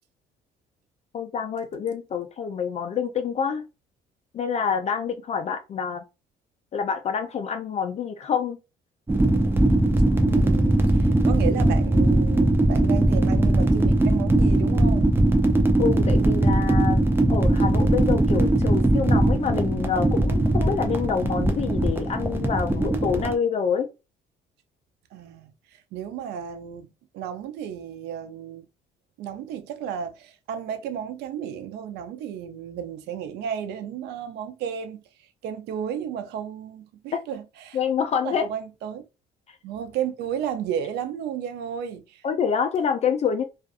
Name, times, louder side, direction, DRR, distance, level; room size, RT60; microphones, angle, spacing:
voice 1, 1.1-3.7 4.3-6.0 6.7-8.6 15.8-17.0 17.3-23.9 37.7-38.5 42.2-43.4, left 6 dB, 40° left, 0.4 m, -27 dB
sound 1, 9.1-23.3, right 1 dB, 15° right, 0.5 m, -20 dB
voice 2, 10.3-15.1 25.1-25.5 25.9-28.7 29.2-35.0 35.4-37.8 38.2-39.0 39.6-42.2, right 8 dB, 85° right, 0.5 m, -33 dB
2.4 x 2.3 x 2.4 m
cardioid pair, 110°, 17 cm